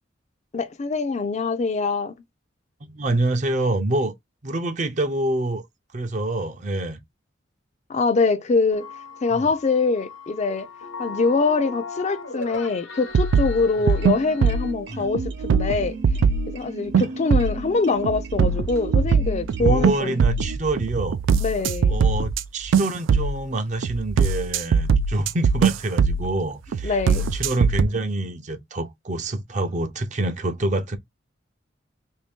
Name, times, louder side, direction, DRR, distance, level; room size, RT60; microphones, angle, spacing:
voice 1, 0.5-2.1 7.9-8.9 9.2-10.7 11.0-16.0 16.5-20.2 21.4-22.0 26.8-27.3, left 4 dB, 35° left, 0.4 m, -23 dB
voice 2, 2.8-4.1 4.4-5.6 5.9-7.0 9.3-9.5 14.9-15.1 16.9-17.1 19.6-21.2 21.9-31.0, right 2 dB, 40° right, 0.6 m, -26 dB
sound 1, 8.7-14.7, left 3 dB, 85° left, 0.9 m, -38 dB
sound 2, 13.1-14.8 15.1-16.5 16.9-17.6 18.0-22.4 22.7-23.4 23.8-26.3 26.7-27.8, right 5 dB, 90° right, 0.3 m, -21 dB
sound 3, 13.9-20.6, right 4 dB, 65° right, 0.8 m, -37 dB
3.0 x 2.7 x 3.4 m
head